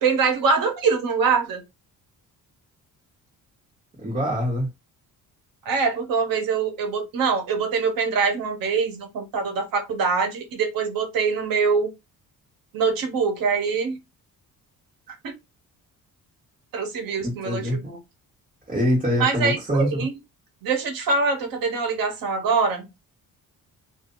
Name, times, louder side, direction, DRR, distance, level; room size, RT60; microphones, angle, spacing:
voice 1, 0.0-1.6 5.6-11.9 12.7-14.0 15.2-15.3 16.7-18.0 19.1-20.2 20.6-22.9, right 5 dB, 75° right, 1.2 m, -24 dB
voice 2, 4.0-4.7 17.2-17.8 18.7-20.1, equal, 25° right, 1.6 m, -24 dB
2.8 x 2.7 x 3.8 m
cardioid pair, 155°, 34 cm